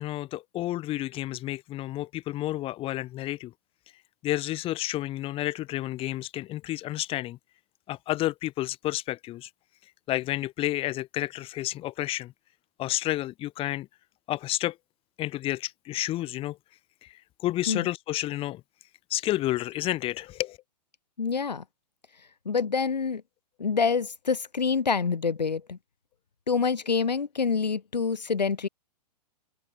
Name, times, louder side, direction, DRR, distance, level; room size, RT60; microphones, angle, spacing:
voice 1, 0.0-3.5 4.2-7.4 7.9-9.5 10.1-12.3 12.8-13.9 14.3-14.8 15.2-16.6 17.0-18.6 19.1-20.6, left 15 dB, 25° left, 2.8 m, -30 dB
voice 2, 21.2-21.6 22.4-23.2 23.6-25.8 26.5-28.7, left 5 dB, 85° left, 1.0 m, -26 dB
figure-of-eight pair, 115°, 21 cm